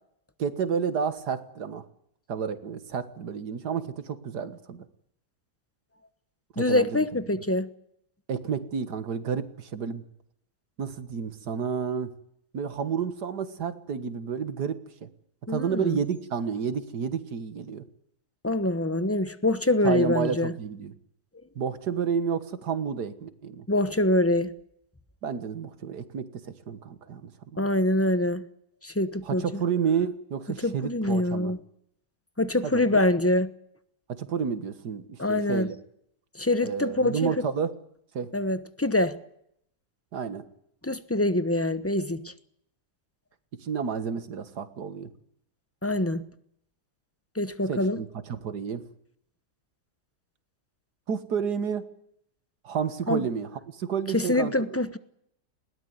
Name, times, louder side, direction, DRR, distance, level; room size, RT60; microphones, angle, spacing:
voice 1, 0.4-1.8 2.3-4.9 6.6-7.1 8.3-10.0 10.8-12.1 12.5-15.1 15.5-17.8 19.8-20.9 21.6-23.6 25.2-27.7 29.2-31.5 32.6-32.9 34.1-35.8 36.6-37.7 38.1-38.3 40.1-40.4 43.6-45.1 47.7-48.8 51.1-51.9 52.6-54.8, right 6 dB, 75° right, 2.1 m, -30 dB
voice 2, 6.6-7.7 15.5-16.0 18.4-20.5 23.7-24.5 27.6-28.4 28.8-29.6 30.6-31.6 32.4-33.5 35.2-35.7 36.3-37.4 38.3-39.2 40.8-42.3 45.8-46.2 47.4-48.0 53.1-53.2 54.1-55.0, left 1 dB, 10° left, 0.9 m, -25 dB
20.5 x 18.5 x 9.5 m
omnidirectional pair, 1.8 m